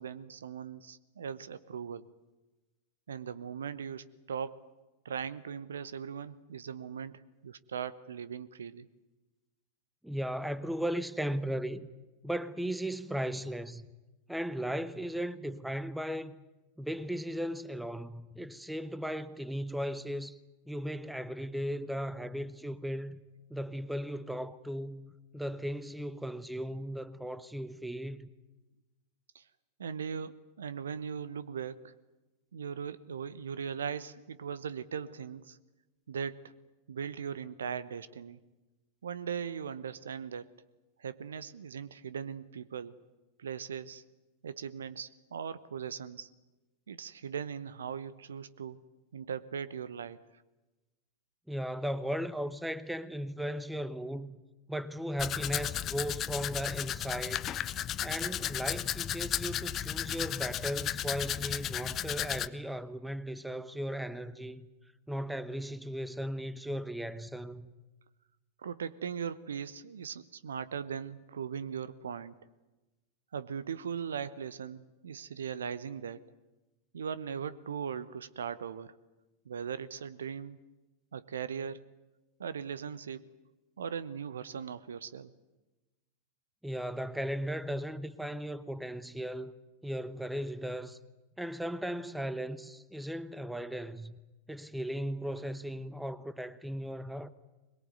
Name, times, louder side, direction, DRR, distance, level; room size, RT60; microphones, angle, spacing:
voice 1, 0.0-2.1 3.1-4.7 5.0-8.9 29.3-29.4 29.8-31.9 32.5-35.6 36.1-36.5 36.9-38.4 39.0-40.5 41.0-43.0 43.4-44.0 44.4-46.3 46.9-48.8 49.1-50.4 68.6-72.4 73.3-76.2 76.9-79.0 79.5-80.6 81.1-81.8 82.4-83.3 83.8-85.3, right 7 dB, 65° right, 0.9 m, -39 dB
voice 2, 10.0-11.9 12.2-13.9 14.3-16.4 16.8-20.4 20.7-23.2 23.5-28.3 51.5-54.4 54.7-57.5 58.0-64.6 65.1-67.7 86.6-89.6 89.8-91.0 91.4-94.2 94.5-97.3, equal, 5° right, 1.0 m, -36 dB
Domestic sounds home sounds, 55.2-62.5, left 11 dB, 30° left, 0.8 m, -34 dB
22.0 x 22.0 x 9.3 m
figure-of-eight pair, 90°, 0 cm